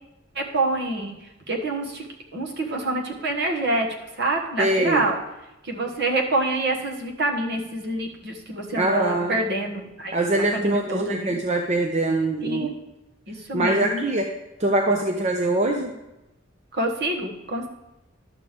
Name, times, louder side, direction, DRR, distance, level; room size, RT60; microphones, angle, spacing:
voice 1, 0.3-2.0 2.3-3.9 4.2-5.2 5.6-11.4 12.4-12.7 13.3-14.0 16.7-17.7, right 2 dB, 60° right, 1 dB, 1.4 m, -26 dB
voice 2, 4.6-5.1 8.8-9.4 10.1-12.7 13.5-14.3 14.6-15.9, right 2 dB, 35° right, 2 dB, 0.7 m, -23 dB
11.5 x 6.6 x 3.4 m, 0.93 s
head